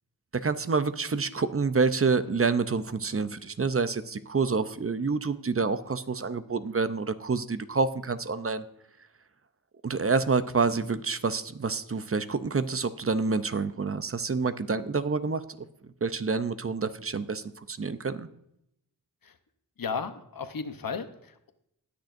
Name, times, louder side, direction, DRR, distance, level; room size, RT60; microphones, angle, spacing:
voice 1, 0.3-8.6 9.8-18.3, right 4 dB, 35° right, 12 dB, 0.6 m, -28 dB
voice 2, 19.8-21.5, left 5 dB, 60° left, 9 dB, 0.9 m, -35 dB
19.0 x 6.5 x 2.6 m, 0.77 s
cardioid pair, 40°, 38 cm